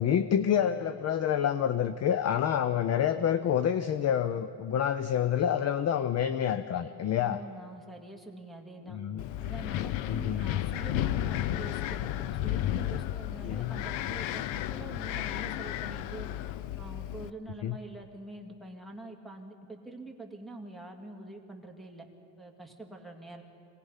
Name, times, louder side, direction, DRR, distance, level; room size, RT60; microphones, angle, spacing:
voice 1, 0.0-7.4 8.9-9.2 10.1-10.5 13.4-13.8 17.6-17.8, left 9 dB, 35° left, 12 dB, 0.5 m, -28 dB
voice 2, 7.2-9.0 9.4-16.3 16.8-22.1 22.4-23.4, right 2 dB, ahead, 3 dB, 1.9 m, -45 dB
Wind, 9.2-17.3, left 13 dB, 70° left, 0.7 m, -33 dB
25.0 x 18.5 x 5.6 m, 2.5 s
cardioid pair, 140°, 47 cm